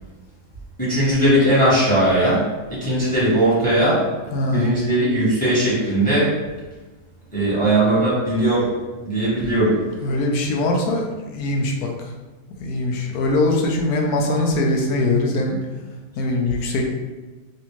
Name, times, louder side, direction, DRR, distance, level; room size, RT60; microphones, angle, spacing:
voice 1, 0.8-4.0 4.5-6.3 7.3-8.7 9.0-9.8, right 1 dB, 5° left, -8 dB, 1.0 m, -19 dB
voice 2, 4.3-4.7 10.0-11.9 12.6-15.6 16.2-16.9, left 2 dB, 80° left, 1 dB, 1.1 m, -21 dB
3.3 x 2.6 x 2.9 m, 1.2 s
omnidirectional pair, 1.6 m